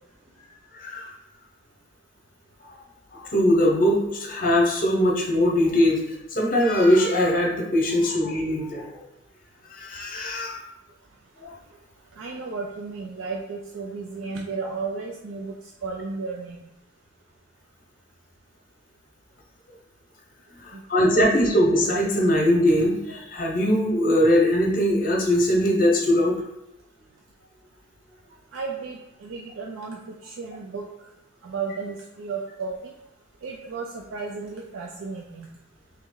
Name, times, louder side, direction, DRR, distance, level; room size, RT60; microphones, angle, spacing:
voice 1, 0.7-1.1 3.1-6.0 6.3-8.9 9.7-10.6 11.4-11.5 20.6-26.4, left 1 dB, 45° left, -1 dB, 0.8 m, -21 dB
voice 2, 12.2-15.5 15.8-16.6 20.7-20.8 28.5-30.9 31.4-32.9 33.4-35.5, right 4 dB, 75° right, 1 dB, 0.4 m, -34 dB
3.3 x 3.0 x 3.7 m, 0.90 s
head